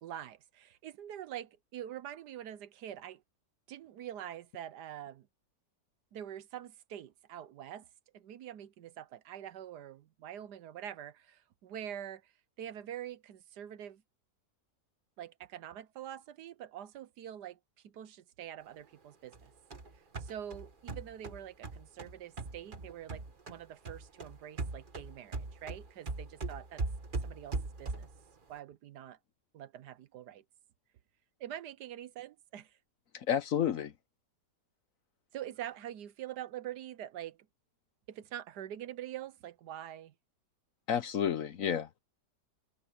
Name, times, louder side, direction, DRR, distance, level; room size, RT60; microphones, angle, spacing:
voice 1, 0.0-3.2 3.7-5.3 6.1-7.9 8.1-12.3 12.6-14.0 15.2-17.6 17.8-19.5 19.9-26.8 27.2-28.1 28.5-29.2 29.5-30.4 31.4-32.8 35.3-37.5 38.1-40.1, right 11 dB, 75° right, 1.4 m, -45 dB
sound 1, 19.3-23.6 23.8-28.2, right 3 dB, 30° right, 1.5 m, -40 dB
voice 2, 33.1-33.9 40.9-42.0, left 9 dB, 60° left, 1.0 m, -31 dB
omnidirectional pair, 1.8 m